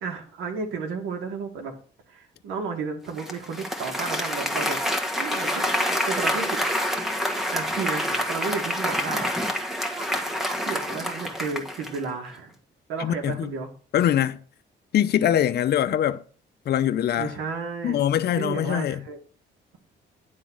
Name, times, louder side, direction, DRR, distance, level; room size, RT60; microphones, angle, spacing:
voice 1, 0.0-1.7 2.1-4.8 5.2-5.7 6.1-6.6 7.5-9.3 10.6-12.5 12.9-13.7 17.2-18.0 18.4-19.2, right 5 dB, 90° right, 1.9 m, -32 dB
Applause, 3.2-12.1, equal, ahead, 1.4 m, -27 dB
voice 2, 13.0-13.5 13.9-14.4 14.9-16.2 16.7-17.3 17.8-19.0, left 10 dB, 55° left, 0.6 m, -23 dB
10.5 x 3.8 x 6.3 m
cardioid pair, 90°, 20 cm